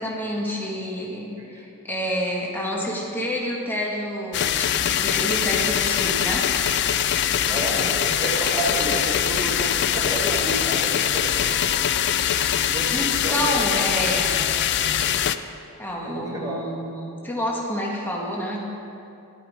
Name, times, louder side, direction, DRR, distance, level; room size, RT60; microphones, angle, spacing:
voice 1, 0.0-6.5 7.5-8.0 12.9-14.5 15.8-18.7, equal, 10° left, -3 dB, 1.3 m, -28 dB
sound 1, 4.3-15.4, left 10 dB, 50° left, 0.4 m, -23 dB
voice 2, 7.4-11.4 12.6-13.9 14.1-14.5 16.0-16.6, right 1 dB, 15° right, -4 dB, 1.3 m, -31 dB
12.0 x 8.7 x 4.9 m, 2.6 s
head